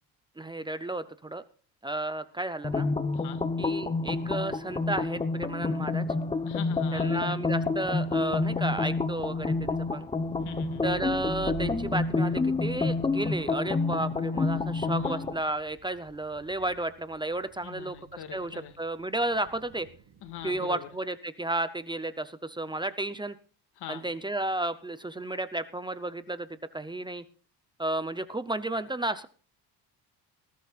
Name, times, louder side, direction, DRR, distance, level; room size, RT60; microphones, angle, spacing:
voice 1, 0.4-1.4 1.8-2.9 3.6-6.0 6.9-10.1 10.8-18.0 18.3-19.9 20.4-23.4 23.9-27.2 27.8-29.3, right 2 dB, 10° right, 12 dB, 0.7 m, -32 dB
sound 1, 2.6-15.4, left 3 dB, 15° left, 1.0 m, -29 dB
voice 2, 6.4-7.4 10.4-10.9 14.9-15.2 17.6-18.8 20.2-20.9 23.8-24.0, left 9 dB, 75° left, 9 dB, 2.0 m, -43 dB
sound 2, 8.3-20.6, right 10 dB, 65° right, 2.7 m, -49 dB
20.0 x 13.0 x 2.5 m, 0.39 s
cardioid pair, 155°, 40 cm